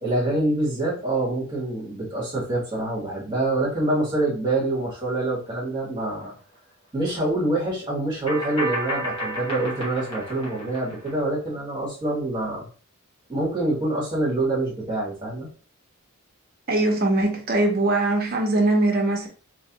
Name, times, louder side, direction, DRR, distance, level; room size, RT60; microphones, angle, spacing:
voice 1, 0.0-6.3 6.9-12.7 13.3-15.5, right 2 dB, 20° right, 1.8 m, -26 dB
sound 1, 6.2-6.3 8.3-11.1, right 1 dB, 25° left, 1.4 m, -31 dB
voice 2, 16.7-19.3, right 2 dB, 45° right, 0.9 m, -21 dB
3.2 x 3.1 x 3.0 m
head